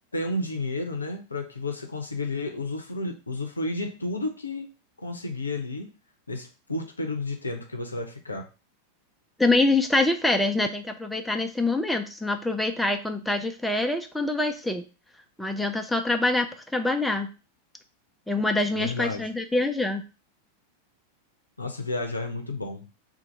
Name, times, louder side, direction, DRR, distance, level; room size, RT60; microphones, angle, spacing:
voice 1, 0.1-4.7 5.0-5.9 6.3-8.5 18.7-19.3 21.6-22.9, left 2 dB, 80° left, 5 dB, 0.6 m, -32 dB
voice 2, 9.4-14.8 15.4-16.5 16.7-17.3 18.3-20.0, left 2 dB, 5° left, 5 dB, 0.4 m, -25 dB
2.7 x 2.5 x 4.2 m, 0.32 s
figure-of-eight pair, 90°, 0 cm